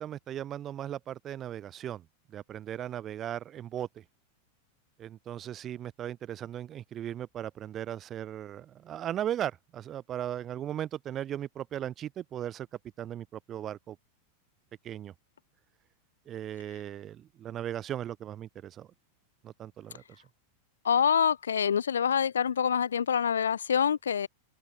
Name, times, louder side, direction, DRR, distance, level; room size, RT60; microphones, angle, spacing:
voice 1, 0.0-2.0 2.3-4.0 5.0-12.7 13.0-14.0 14.8-15.1 16.3-18.9 19.4-20.0, right 11 dB, 30° right, 0.5 m, -37 dB
voice 2, 20.8-24.3, left 7 dB, 70° left, 0.6 m, -26 dB
open air
figure-of-eight pair, 90°, 0 cm